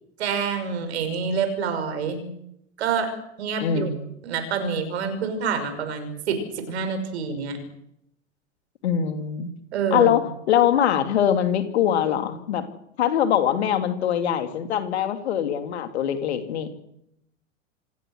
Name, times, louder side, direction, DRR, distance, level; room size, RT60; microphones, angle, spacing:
voice 1, 0.2-2.2 2.8-3.1 3.4-3.9 4.2-6.4 6.7-7.6 9.7-10.1, right 6 dB, 60° right, 9 dB, 5.9 m, -27 dB
voice 2, 3.6-3.9 8.8-9.5 9.9-12.7 13.0-16.7, left 9 dB, 60° left, 9 dB, 2.9 m, -23 dB
27.0 x 18.0 x 6.6 m, 0.78 s
figure-of-eight pair, 90°, 37 cm